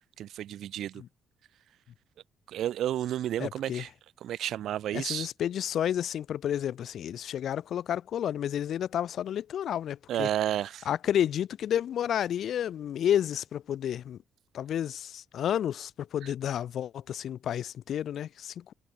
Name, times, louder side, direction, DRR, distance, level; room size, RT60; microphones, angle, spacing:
voice 1, 0.2-1.0 2.5-3.9 4.2-5.3 10.1-10.9 16.2-16.3, right 11 dB, 75° right, 2.5 m, -31 dB
voice 2, 3.4-3.8 4.9-10.3 10.9-14.2 14.5-18.7, left 10 dB, 65° left, 1.1 m, -31 dB
cardioid pair, 90°, 0 cm